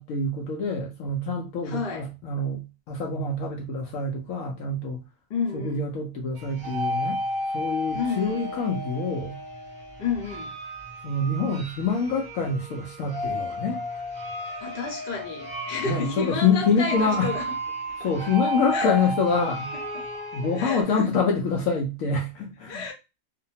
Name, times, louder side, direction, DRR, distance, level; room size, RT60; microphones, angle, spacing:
voice 1, 0.0-5.0 5.5-7.2 7.5-9.4 11.0-13.8 15.9-17.3 18.0-19.7 20.3-22.9, left 4 dB, 70° left, 0.9 m, -26 dB
voice 2, 1.6-2.1 5.3-5.8 7.9-8.4 10.0-10.5 14.6-17.5 18.0-18.3 18.7-18.9 20.4-21.1 22.7-22.9, left 5 dB, 45° left, 0.9 m, -31 dB
sound 1, 6.4-20.8, equal, 5° left, 0.6 m, -33 dB
2.7 x 2.1 x 2.7 m
omnidirectional pair, 1.5 m